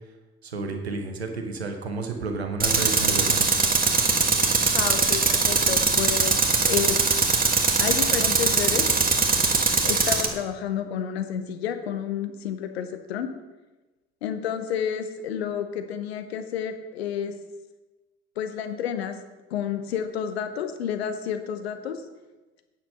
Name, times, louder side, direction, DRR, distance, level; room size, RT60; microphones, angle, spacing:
voice 1, 0.4-3.5, right 3 dB, 85° right, 5 dB, 0.8 m, -31 dB
Tools, 2.6-10.3, right 4 dB, 30° right, 1.5 m, -21 dB
voice 2, 4.7-7.1 7.8-8.9 9.9-13.3 14.2-17.4 18.4-19.2 19.5-22.0, left 8 dB, 75° left, 8 dB, 0.8 m, -30 dB
9.3 x 6.9 x 5.5 m, 1.1 s
figure-of-eight pair, 45°, 31 cm